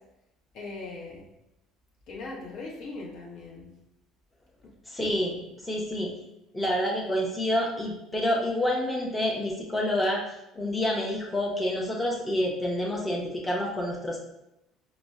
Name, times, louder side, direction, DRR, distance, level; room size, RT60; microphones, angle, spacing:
voice 1, 0.5-1.2 2.1-3.7, left 3 dB, 60° left, -3 dB, 0.9 m, -39 dB
voice 2, 4.9-6.1 6.5-10.2 10.5-14.2, left 1 dB, 15° left, -2 dB, 0.7 m, -28 dB
5.0 x 2.1 x 2.4 m, 0.89 s
hypercardioid pair, 65°, 0 cm